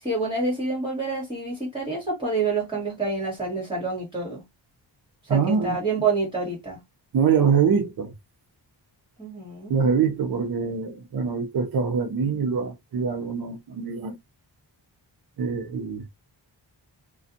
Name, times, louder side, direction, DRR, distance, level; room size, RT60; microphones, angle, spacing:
voice 1, 0.0-4.4 5.2-6.8 9.2-9.8, right 3 dB, 10° right, 1.5 m, -27 dB
voice 2, 5.3-5.8 7.1-8.1 9.7-14.2 15.4-16.1, right 6 dB, 55° right, 0.6 m, -24 dB
2.5 x 2.3 x 2.6 m
wide cardioid pair, 155°, 44 cm